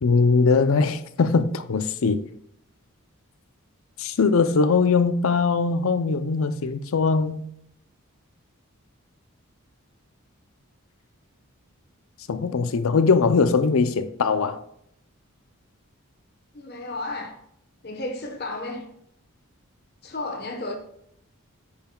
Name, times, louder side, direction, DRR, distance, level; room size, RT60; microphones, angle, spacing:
voice 1, 0.0-2.2 4.0-7.4 12.3-14.6, left 4 dB, 70° left, 0.5 m, -21 dB
voice 2, 16.5-17.4 17.8-18.8 20.0-20.8, left 2 dB, 45° left, 1.0 m, -32 dB
8.6 x 5.7 x 2.3 m
head